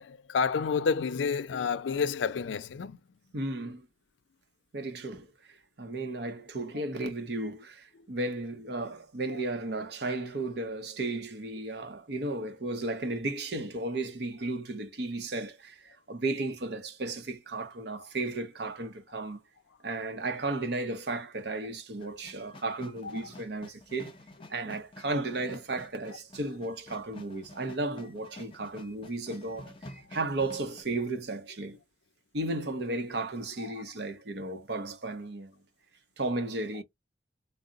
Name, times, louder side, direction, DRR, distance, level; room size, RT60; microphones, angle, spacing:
voice 1, 0.0-3.0 33.6-33.7, left 5 dB, 85° left, 0.4 m, -29 dB
voice 2, 3.3-3.9 4.7-5.3 5.8-19.4 19.8-24.1 24.5-29.7 30.1-31.8 32.3-35.5 36.2-36.8, right 2 dB, 65° right, 0.7 m, -34 dB
sound 1, 22.0-30.8, left 2 dB, 30° left, 0.6 m, -50 dB
3.8 x 2.0 x 3.8 m
head